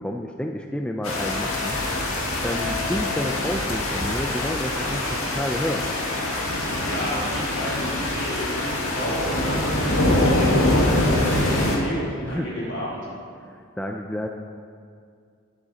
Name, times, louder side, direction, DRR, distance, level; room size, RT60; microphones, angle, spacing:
voice 1, 0.0-2.1 2.4-5.8 12.2-12.5 13.4-14.3, equal, 5° left, 2 dB, 0.4 m, -30 dB
sound 1, 1.0-11.8, left 1 dB, 75° left, 1.8 m, -24 dB
voice 2, 6.8-13.0, equal, 60° left, -6 dB, 3.3 m, -32 dB
11.5 x 10.0 x 4.1 m, 2.2 s
head